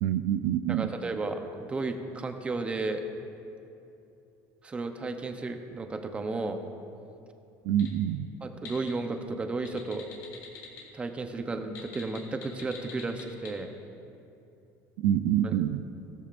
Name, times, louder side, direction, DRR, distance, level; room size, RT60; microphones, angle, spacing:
voice 1, 0.0-0.9 7.6-8.3 15.0-15.8, right 11 dB, 80° right, 10 dB, 0.4 m, -26 dB
voice 2, 0.7-3.0 4.6-6.6 8.4-10.1 10.9-13.7 15.4-15.6, right 3 dB, 15° right, 6 dB, 0.8 m, -33 dB
sound 1, 7.6-7.9 8.4-8.9 9.5-10.8 11.6-13.5, left 7 dB, 65° left, 2.5 m, -44 dB
16.0 x 13.5 x 2.6 m, 2.7 s
cardioid pair, 135°, 7 cm